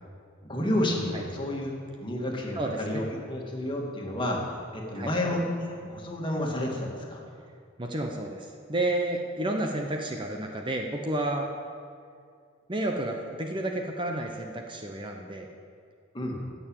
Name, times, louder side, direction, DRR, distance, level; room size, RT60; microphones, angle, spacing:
voice 1, 0.4-1.7 2.0-7.2 16.1-16.4, left 1 dB, 25° left, -1 dB, 2.0 m, -30 dB
voice 2, 2.6-3.0 4.9-5.1 7.8-11.5 12.7-15.5, right 1 dB, 25° right, 2 dB, 0.9 m, -31 dB
15.0 x 6.8 x 8.8 m, 2.2 s
head